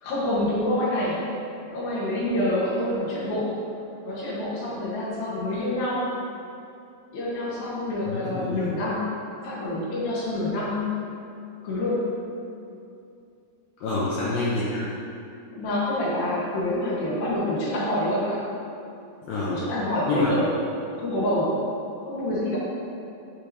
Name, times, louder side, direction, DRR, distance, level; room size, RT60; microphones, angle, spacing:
voice 1, 0.0-1.3 1.7-3.5 4.0-6.1 7.1-9.1 9.4-10.9 11.6-12.1 13.9-14.0 15.5-18.5 19.5-20.5 20.9-21.6 22.1-22.6, left 1 dB, 65° left, -8 dB, 2.7 m, -27 dB
voice 2, 8.1-8.7 13.8-14.9 19.2-19.6 20.1-20.3, left 3 dB, 85° left, -7 dB, 1.9 m, -27 dB
8.5 x 4.7 x 2.7 m, 2.6 s
omnidirectional pair, 4.9 m